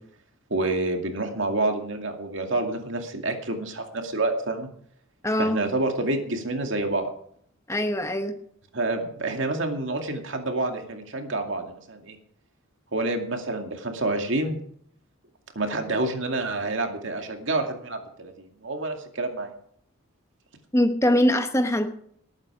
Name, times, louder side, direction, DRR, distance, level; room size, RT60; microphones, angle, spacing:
voice 1, 0.5-4.7 5.4-7.1 8.7-12.2 12.9-14.6 15.6-19.5, right 2 dB, 60° right, 4 dB, 2.3 m, -28 dB
voice 2, 5.2-5.6 7.7-8.3 20.7-21.9, left 1 dB, 15° left, 7 dB, 1.0 m, -22 dB
19.0 x 9.0 x 4.9 m, 0.67 s
head